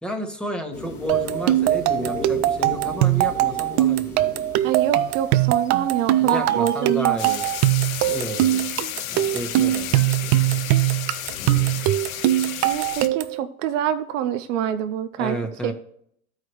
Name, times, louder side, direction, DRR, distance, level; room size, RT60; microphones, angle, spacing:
voice 1, 0.0-4.2 6.2-7.4 8.0-8.7 9.1-10.2 15.2-15.7, equal, ahead, 4 dB, 1.3 m, -31 dB
sound 1, 0.7-13.0, left 3 dB, 90° left, 2.2 m, -40 dB
sound 2, 1.1-13.4, right 15 dB, 35° right, 0.4 m, -21 dB
voice 2, 4.6-7.2 12.6-15.4 15.6-15.7, right 10 dB, 60° right, 8 dB, 0.7 m, -26 dB
sound 3, 7.2-13.1, left 12 dB, 70° left, 0.8 m, -33 dB
13.0 x 4.8 x 3.1 m, 0.66 s
hypercardioid pair, 105°, 44 cm